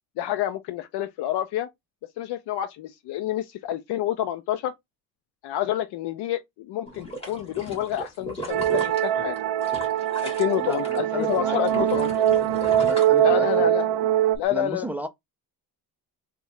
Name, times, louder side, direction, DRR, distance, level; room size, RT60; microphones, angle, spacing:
voice 1, 0.2-1.7 2.2-4.7 5.4-9.4 10.2-12.3 13.2-13.9 14.4-14.9, left 12 dB, 90° left, 0.5 m, -28 dB
sound 1, 6.9-11.0 11.3-13.8 14.2-14.3, equal, 15° left, 1.6 m, -37 dB
sound 2, 8.5-14.4, right 11 dB, 75° right, 0.5 m, -23 dB
voice 2, 10.6-12.0 12.8-13.7 14.5-15.1, right 1 dB, 5° right, 0.3 m, -34 dB
3.6 x 2.2 x 3.0 m
cardioid pair, 145°, 39 cm